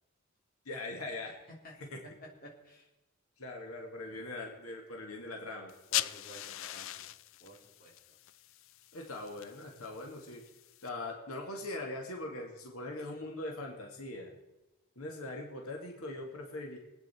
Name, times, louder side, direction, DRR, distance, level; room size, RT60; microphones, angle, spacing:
voice 1, 0.7-1.3 1.8-2.0 3.4-5.7 8.9-10.4 10.8-14.3 15.0-16.8, left 2 dB, 90° left, 1 dB, 2.1 m, -41 dB
voice 2, 2.4-2.9 5.9-7.1 7.4-8.0, equal, 45° left, -2 dB, 3.2 m, -53 dB
sound 1, 5.7-10.9, left 13 dB, 65° left, 0.4 m, -40 dB
24.5 x 9.2 x 4.4 m, 1.0 s
head